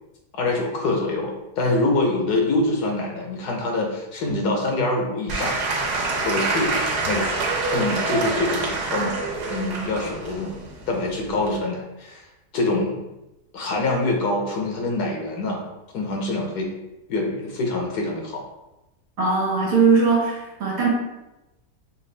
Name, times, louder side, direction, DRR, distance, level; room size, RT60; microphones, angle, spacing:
voice 1, 0.3-5.6 6.2-6.7 7.0-7.3 7.6-9.2 9.5-10.5 10.9-12.2 12.5-13.0 13.5-15.7 15.9-16.7 17.1-18.5, left 2 dB, 80° left, 0 dB, 1.5 m, -25 dB
Applause / Crowd, 5.3-11.6, right 3 dB, 85° right, 1.4 m, -26 dB
voice 2, 19.2-20.9, right 4 dB, 60° right, -4 dB, 1.7 m, -20 dB
5.5 x 2.5 x 3.3 m, 0.96 s
omnidirectional pair, 1.7 m